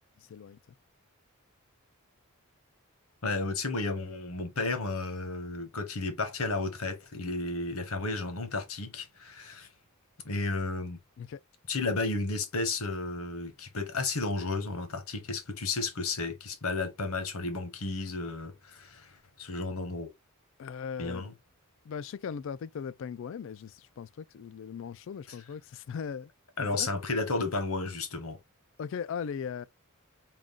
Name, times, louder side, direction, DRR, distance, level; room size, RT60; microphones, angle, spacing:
voice 1, 0.2-0.6 11.2-11.4 20.6-21.3 21.8-26.3 26.6-26.9 28.8-29.6, left 7 dB, 60° left, 0.3 m, -38 dB
voice 2, 3.2-9.7 10.2-11.0 11.7-20.1 21.0-21.3 25.3-25.4 26.6-28.4, left 3 dB, 80° left, 1.1 m, -33 dB
3.7 x 2.3 x 3.7 m
head